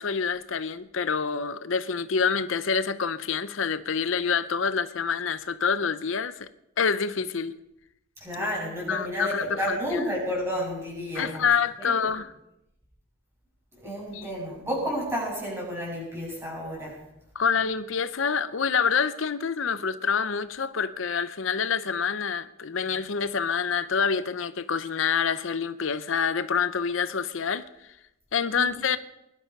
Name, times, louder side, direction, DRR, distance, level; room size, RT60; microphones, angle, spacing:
voice 1, 0.0-6.5 6.8-7.5 8.4-8.5 8.9-10.0 11.1-12.3 13.8-14.3 17.3-27.6 28.3-29.0, left 6 dB, 80° left, 0.7 m, -27 dB
voice 2, 8.2-11.5 11.8-11.9 13.8-17.0 28.6-28.7, equal, 10° right, 7.4 m, -31 dB
21.0 x 11.5 x 5.4 m
head